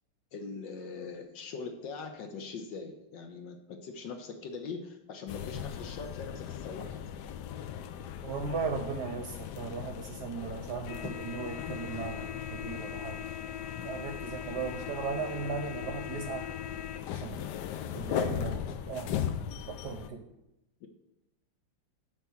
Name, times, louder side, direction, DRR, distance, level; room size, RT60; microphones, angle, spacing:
voice 1, 0.3-7.0 20.8-20.9, left 4 dB, 65° left, 5 dB, 1.4 m, -41 dB
sound 1, 5.3-20.1, left 9 dB, 90° left, 0.9 m, -38 dB
voice 2, 8.2-13.2 13.8-16.5 17.1-17.5 17.9-19.2 19.7-20.2, right 5 dB, 65° right, 5 dB, 1.1 m, -37 dB
10.0 x 3.5 x 6.9 m, 0.91 s
omnidirectional pair, 2.4 m